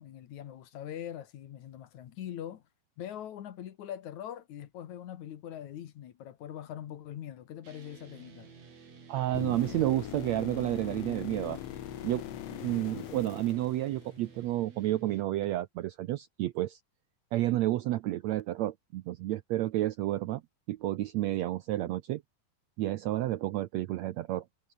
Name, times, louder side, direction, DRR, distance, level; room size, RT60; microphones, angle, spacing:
voice 1, 0.0-2.6 3.0-8.5, left 10 dB, 65° left, 2.6 m, -42 dB
sound 1, 7.6-15.2, right 5 dB, 50° right, 4.9 m, -53 dB
voice 2, 9.1-11.6 12.0-12.2 12.5-16.8 17.3-20.4 20.7-22.2 22.8-24.5, right 15 dB, 75° right, 1.6 m, -30 dB
sound 2, 9.3-14.4 18.4-18.5, left 15 dB, 85° left, 1.4 m, -41 dB
omnidirectional pair, 3.8 m